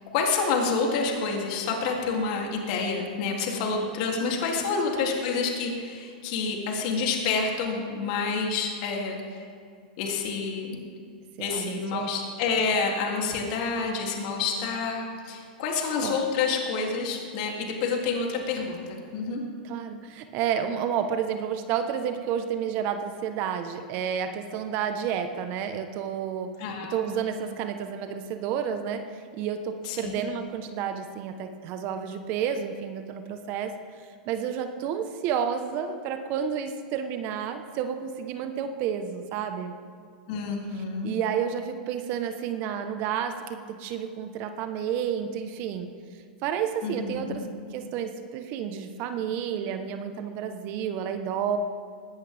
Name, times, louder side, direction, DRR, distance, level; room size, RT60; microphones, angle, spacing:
voice 1, 0.1-9.4 10.0-10.8 11.4-19.4 26.6-27.2 29.8-30.2 40.3-41.1 46.8-47.5, left 4 dB, 55° left, 0 dB, 3.0 m, -28 dB
voice 2, 11.4-12.1 16.0-16.2 19.6-26.5 26.9-33.7 34.0-39.7 40.7-45.9 46.4-51.6, right 8 dB, 45° right, 7 dB, 1.2 m, -31 dB
20.5 x 16.5 x 3.6 m, 2.3 s
hypercardioid pair, 120°, 5 cm